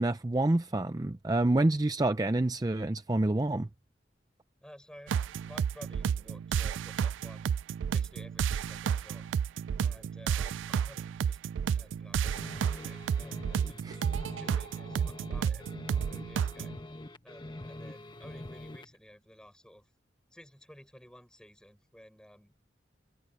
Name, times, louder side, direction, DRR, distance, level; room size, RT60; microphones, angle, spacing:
voice 1, 0.0-3.7 13.8-14.0, right 2 dB, 20° right, 0.5 m, -27 dB
voice 2, 4.6-7.5 7.9-9.3 9.8-11.4 11.7-13.9 14.4-16.7 17.2-19.9 20.3-22.5, equal, 5° left, 6.3 m, -54 dB
sound 1, 5.1-16.7, right 7 dB, 85° right, 0.3 m, -31 dB
sound 2, 12.2-19.0, left 1 dB, 25° left, 1.3 m, -45 dB
head